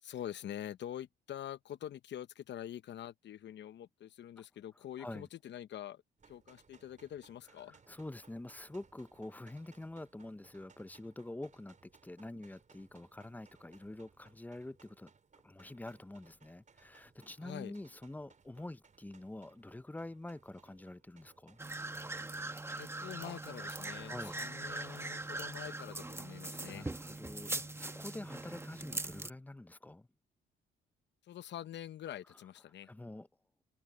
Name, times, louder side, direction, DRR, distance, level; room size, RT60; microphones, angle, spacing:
voice 1, 0.0-7.8 17.4-17.7 22.7-26.9 31.2-32.9, left 11 dB, 65° left, 0.8 m, -45 dB
sound 1, 6.2-25.4, right 5 dB, 40° right, 5.0 m, -66 dB
voice 2, 7.9-15.1 15.4-21.6 24.1-24.4 26.7-30.1 32.8-33.3, left 1 dB, 10° left, 0.6 m, -46 dB
sound 2, 21.6-29.3, right 2 dB, 10° right, 1.3 m, -41 dB
cardioid pair, 90°, 20 cm